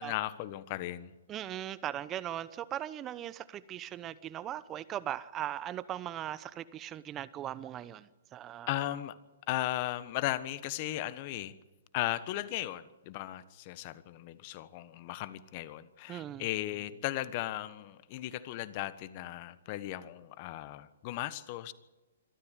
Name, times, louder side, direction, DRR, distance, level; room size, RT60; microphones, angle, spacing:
voice 1, 0.0-1.1 8.7-9.2 9.5-11.5 11.9-21.7, left 15 dB, 40° left, 16 dB, 1.3 m, -36 dB
voice 2, 1.3-8.7 16.1-16.5, right 11 dB, 25° right, 17 dB, 0.9 m, -39 dB
26.0 x 13.5 x 9.2 m, 1.1 s
hypercardioid pair, 130°, 0 cm